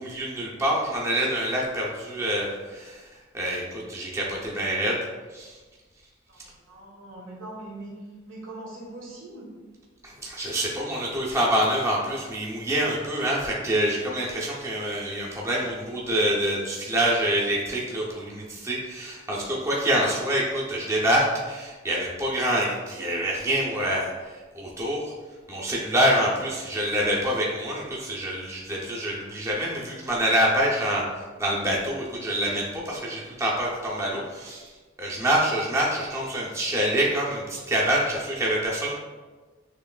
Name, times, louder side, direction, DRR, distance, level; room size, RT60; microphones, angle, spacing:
voice 1, 0.0-3.0 3.3-5.0 5.3-5.5 10.0-24.1 24.5-25.1 25.5-31.0 31.4-34.7 35.0-38.9, right 1 dB, 15° right, -4 dB, 0.7 m, -26 dB
voice 2, 6.7-7.9 8.3-9.5, right 2 dB, 80° right, -4 dB, 1.4 m, -41 dB
6.6 x 3.1 x 2.3 m, 1.3 s
head